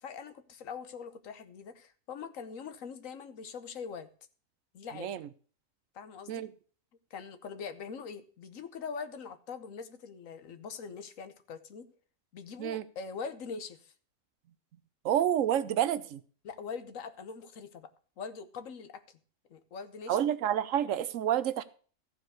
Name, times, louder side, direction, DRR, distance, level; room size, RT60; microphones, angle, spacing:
voice 1, 0.0-4.1 4.7-5.2 5.9-6.5 7.1-11.9 12.3-13.9 16.4-17.9 18.2-19.2 19.5-20.2, left 5 dB, 75° left, 1.3 m, -43 dB
voice 2, 4.9-5.3 6.3-6.5 12.6-12.8 15.0-16.2 20.1-21.6, right 10 dB, 75° right, 1.0 m, -29 dB
14.0 x 4.7 x 6.4 m
omnidirectional pair, 1.4 m